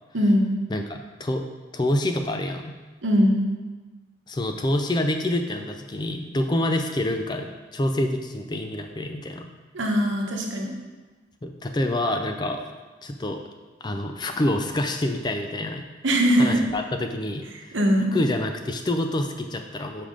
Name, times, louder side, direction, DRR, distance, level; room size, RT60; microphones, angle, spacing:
voice 1, 0.1-0.5 3.0-3.4 9.7-10.7 16.0-16.6 17.7-18.1, equal, 75° right, 1 dB, 1.0 m, -21 dB
voice 2, 0.7-1.4 1.7-2.7 4.3-9.5 11.4-12.6 13.0-13.4 13.8-15.8 16.3-17.7 18.1-20.1, left 1 dB, 20° left, 5 dB, 0.4 m, -27 dB
5.5 x 5.0 x 5.1 m, 1.3 s
head